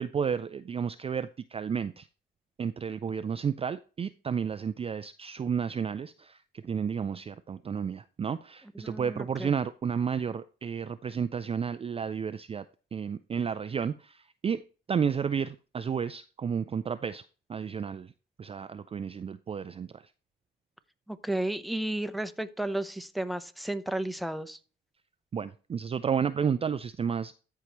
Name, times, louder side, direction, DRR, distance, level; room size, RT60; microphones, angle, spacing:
voice 1, 0.0-2.1 2.6-12.6 12.9-17.2 17.5-18.1 18.4-20.1 25.3-27.3, right 7 dB, 30° right, 12 dB, 0.4 m, -32 dB
voice 2, 8.8-9.5 21.1-24.6, right 1 dB, ahead, 11 dB, 0.7 m, -33 dB
13.5 x 4.6 x 3.0 m, 0.36 s
cardioid pair, 90°, 20 cm